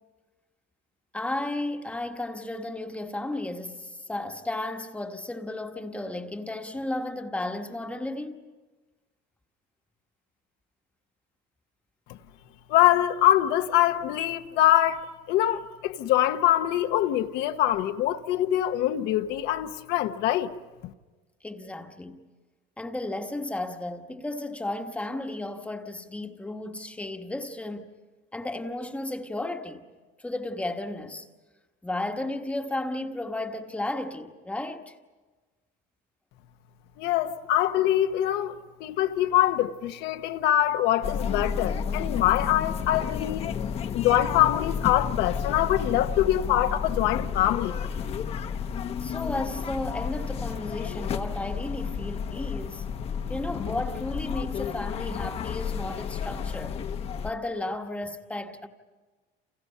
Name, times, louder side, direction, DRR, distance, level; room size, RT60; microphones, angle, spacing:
voice 1, 1.1-8.5 21.4-22.2 22.8-27.9 28.3-29.9 30.2-31.3 31.8-34.9 49.0-52.8 53.3-56.8 57.2-58.7, left 2 dB, 5° left, 1.2 m, -34 dB
voice 2, 12.7-20.5 20.8-20.9 37.0-43.5 43.9-47.8, left 13 dB, 65° left, 1.1 m, -24 dB
Canal St, 41.0-57.3, left 7 dB, 35° left, 0.9 m, -31 dB
29.5 x 29.0 x 5.6 m
cardioid pair, 170°, 18 cm